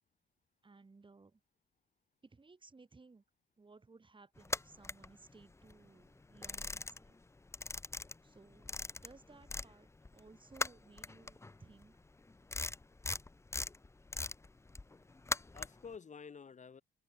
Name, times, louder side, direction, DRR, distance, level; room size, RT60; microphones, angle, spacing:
voice 1, 0.6-1.4 2.2-3.2 3.6-7.2 8.2-12.1, right 3 dB, 25° right, 4.1 m, -60 dB
sound 1, 4.4-5.7 6.1-7.2 7.5-9.7 10.0-15.9, left 3 dB, 15° left, 0.7 m, -41 dB
voice 2, 14.9-16.8, left 6 dB, 35° left, 1.6 m, -52 dB
cardioid pair, 90°, 20 cm